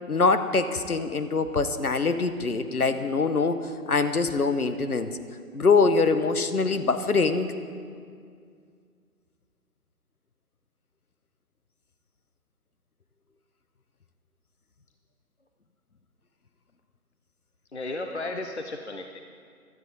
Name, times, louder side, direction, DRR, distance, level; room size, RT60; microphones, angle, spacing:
voice 1, 0.1-3.6 3.9-5.1 5.5-7.5, left 4 dB, 70° left, 10 dB, 0.9 m, -23 dB
voice 2, 17.7-19.2, left 2 dB, 45° left, 5 dB, 0.7 m, -34 dB
16.0 x 12.5 x 4.1 m, 2.2 s
figure-of-eight pair, 160°, 46 cm